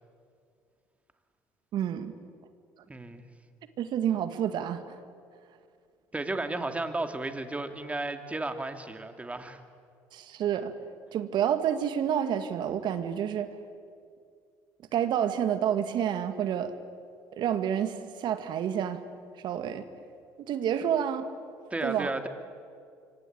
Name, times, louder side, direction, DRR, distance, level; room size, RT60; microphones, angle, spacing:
voice 1, 1.7-2.1 3.8-5.0 10.1-10.7 11.1-13.5 14.9-16.7 17.4-19.0 19.4-19.8 20.5-21.3 21.8-22.1, right 9 dB, 60° right, 10 dB, 2.0 m, -29 dB
voice 2, 2.9-3.2 6.1-9.6 21.7-22.3, right 2 dB, 15° right, 7 dB, 2.6 m, -33 dB
25.5 x 24.5 x 8.7 m, 2.3 s
supercardioid pair, 75°, 9 cm